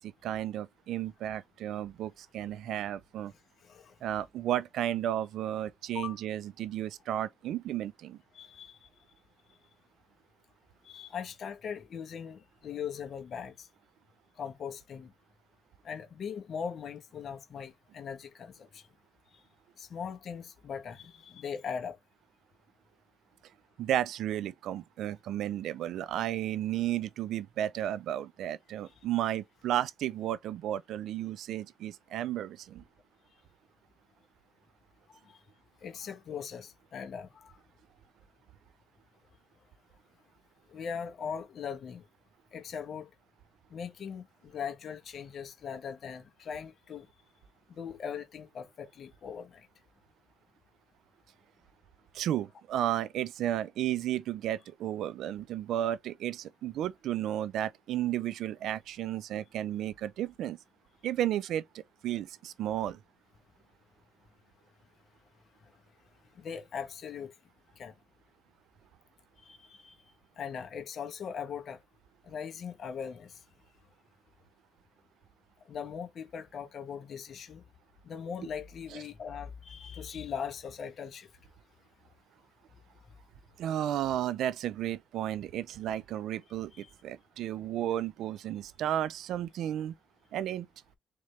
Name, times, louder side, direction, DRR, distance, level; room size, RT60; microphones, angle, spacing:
voice 1, 0.0-3.3 4.0-8.2 23.8-32.8 52.1-60.6 61.0-61.6 62.0-63.0 83.6-89.9 90.3-90.7, right 12 dB, 80° right, 0.4 m, -33 dB
voice 2, 3.6-3.9 5.9-6.2 8.3-8.9 10.8-13.7 14.4-15.1 15.8-18.8 19.8-22.0 35.1-35.4 35.8-37.5 40.7-42.0 42.5-43.1 43.7-47.1 47.7-49.6 66.4-67.3 67.8-67.9 69.4-71.8 72.2-73.4 75.7-77.6 78.0-81.3 86.7-86.9, left 7 dB, 55° left, 1.0 m, -40 dB
3.7 x 3.2 x 3.2 m
cardioid pair, 90°, 0 cm